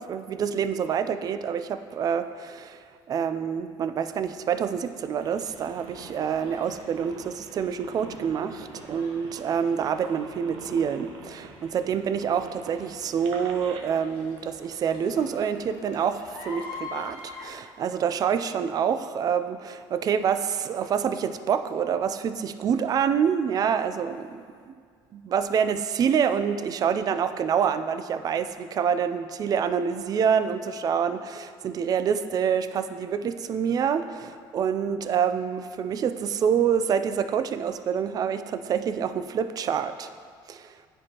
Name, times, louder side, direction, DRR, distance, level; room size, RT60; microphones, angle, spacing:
voice 1, 0.0-2.8 3.1-24.4 24.7-24.8 25.1-40.1 40.5-40.7, right 7 dB, 45° right, 10 dB, 0.4 m, -27 dB
sound 1, 4.0-17.5, left 4 dB, 75° left, 1.3 m, -47 dB
sound 2, 5.2-13.8, right 4 dB, 70° right, 0.7 m, -45 dB
10.0 x 4.5 x 2.9 m, 2.1 s
cardioid pair, 105°, 9 cm